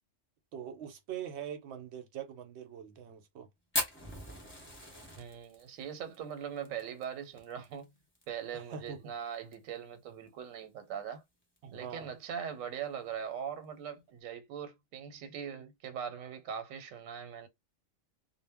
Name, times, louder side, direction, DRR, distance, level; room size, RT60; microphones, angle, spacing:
voice 1, 0.5-3.5 8.5-9.2 11.6-12.1, right 8 dB, 65° right, 0.8 m, -43 dB
Fire, 3.7-8.2 8.5-8.6 8.9-9.0 9.3-9.8 10.3-10.4 11.4-11.6, left 1 dB, 15° left, 0.6 m, -38 dB
voice 2, 5.2-7.9 8.3-11.2 11.7-17.5, right 8 dB, 85° right, 1.0 m, -41 dB
2.1 x 2.0 x 3.3 m
omnidirectional pair, 1.3 m